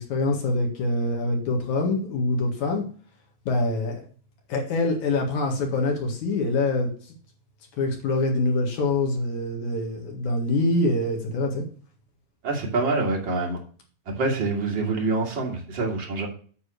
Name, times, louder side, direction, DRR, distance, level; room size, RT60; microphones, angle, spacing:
voice 1, 0.0-2.9 3.5-4.0 4.5-6.9 7.8-11.6, left 2 dB, 55° left, 1 dB, 2.9 m, -25 dB
voice 2, 12.4-13.6 14.2-16.3, right 3 dB, 35° right, 0 dB, 2.4 m, -26 dB
10.0 x 4.2 x 6.3 m, 0.43 s
omnidirectional pair, 4.8 m